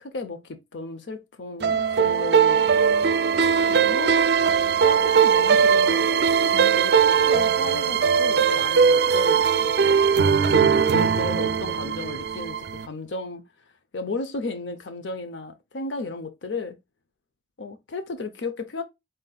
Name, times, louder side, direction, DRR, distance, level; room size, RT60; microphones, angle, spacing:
voice 1, 0.1-2.7 3.7-4.2 4.8-6.1 6.5-10.1 10.6-13.4 13.9-16.8 17.6-18.8, left 3 dB, 80° left, 0.6 m, -34 dB
sound 1, 1.6-12.9, right 6 dB, 60° right, 0.4 m, -20 dB
4.1 x 3.8 x 2.3 m
head